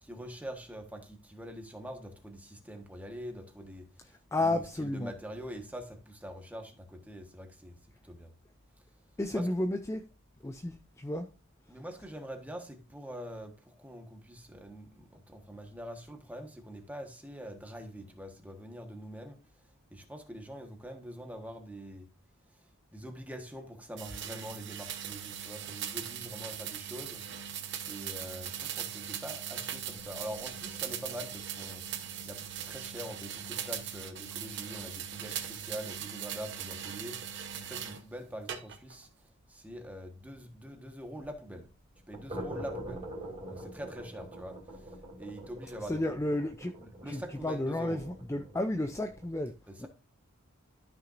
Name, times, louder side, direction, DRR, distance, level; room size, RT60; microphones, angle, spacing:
voice 1, 0.0-4.1 4.4-7.8 8.0-8.3 9.3-9.5 11.7-19.4 19.9-22.1 22.5-22.6 22.9-27.2 27.9-31.8 32.2-39.1 39.5-41.7 42.1-43.1 43.5-46.2 47.0-48.0 49.7-49.9, equal, 5° right, 1.3 m, -44 dB
voice 2, 4.3-5.1 9.2-10.0 10.4-11.3 45.9-46.7 47.1-49.5 49.8-49.9, left 1 dB, 15° left, 0.4 m, -32 dB
sound 1, 24.0-38.0 38.5-39.0, right 9 dB, 55° right, 0.9 m, -40 dB
sound 2, 29.9-35.8 36.0-36.2 36.6-36.7 37.0-37.1 37.5-37.6 40.4-40.5 41.9-49.3, right 1 dB, 25° right, 2.9 m, -46 dB
13.0 x 5.9 x 2.6 m
head